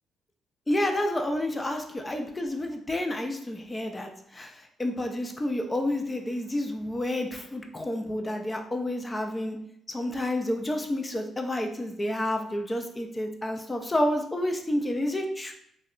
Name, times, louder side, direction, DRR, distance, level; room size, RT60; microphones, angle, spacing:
voice 1, 0.7-9.6 9.9-15.5, left 1 dB, 20° left, 4 dB, 0.3 m, -30 dB
2.7 x 2.1 x 2.3 m, 0.71 s
cardioid pair, 90°, 0 cm